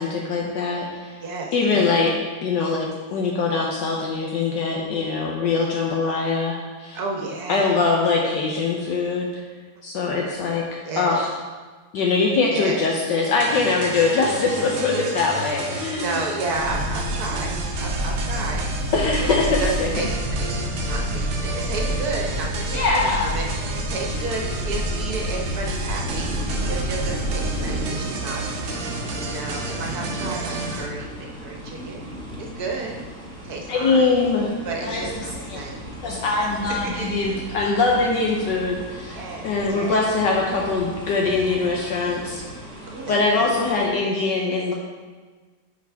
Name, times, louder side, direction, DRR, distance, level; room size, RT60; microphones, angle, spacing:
voice 1, 0.0-1.2 1.5-2.1 2.4-7.0 7.5-9.3 9.8-11.3 11.9-16.2 18.9-19.9 22.7-23.3 33.7-34.5 34.8-35.0 35.5-35.6 36.0-39.2 39.4-42.4 43.1-44.7, left 4 dB, 70° left, -1 dB, 1.4 m, -22 dB
voice 2, 1.2-1.9 6.9-7.8 10.8-11.2 12.5-12.8 14.9-15.0 15.9-17.5 17.8-18.6 19.4-20.1 20.4-32.0 32.4-33.0 33.4-34.1 34.6-35.8 36.8-37.1 39.1-40.0 42.9-43.6, right 3 dB, 55° right, 0 dB, 1.4 m, -32 dB
sound 1, 13.4-30.9, right 3 dB, 80° right, 1.6 m, -32 dB
sound 2, 16.5-27.8, equal, 50° left, 1.5 m, -28 dB
sound 3, 26.0-43.9, equal, 5° left, 0.8 m, -36 dB
9.2 x 5.0 x 3.5 m, 1.4 s
omnidirectional pair, 2.1 m